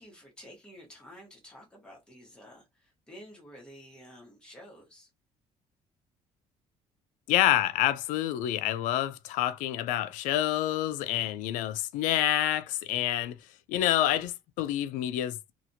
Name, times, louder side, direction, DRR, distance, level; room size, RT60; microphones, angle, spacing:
voice 1, 0.0-5.1, equal, 5° left, 1.1 m, -51 dB
voice 2, 7.3-13.3 13.7-15.5, left 13 dB, 90° left, 0.4 m, -28 dB
2.8 x 2.4 x 2.6 m
cardioid pair, 160°, 13 cm